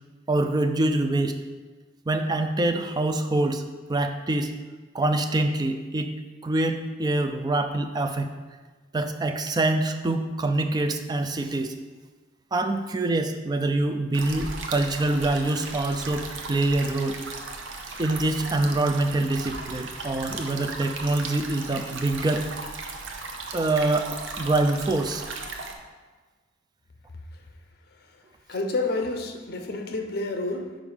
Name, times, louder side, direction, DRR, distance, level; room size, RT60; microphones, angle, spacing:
voice 1, 0.3-1.4 2.1-3.6 3.9-4.5 4.9-6.2 6.4-8.3 8.9-11.7 12.5-17.2 18.0-22.5 23.5-25.2, right 2 dB, 20° right, 6 dB, 0.4 m, -25 dB
sound 1, 14.1-25.8, right 3 dB, 80° right, 0.7 m, -36 dB
voice 2, 28.5-30.8, left 2 dB, 55° left, 5 dB, 0.7 m, -29 dB
5.1 x 5.1 x 4.9 m, 1.3 s
head